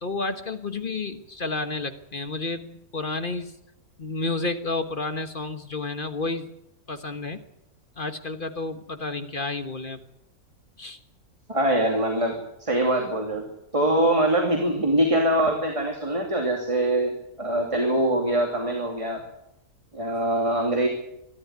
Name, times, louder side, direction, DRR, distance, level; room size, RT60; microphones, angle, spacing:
voice 1, 0.0-3.5 4.0-6.5 6.9-7.4 8.0-10.0 10.8-11.0, left 3 dB, 35° left, 9 dB, 1.4 m, -31 dB
voice 2, 11.5-13.5 13.7-17.1 17.4-19.2 19.9-20.9, right 1 dB, 20° right, 2 dB, 2.7 m, -23 dB
24.5 x 12.5 x 9.5 m, 0.83 s
omnidirectional pair, 1.6 m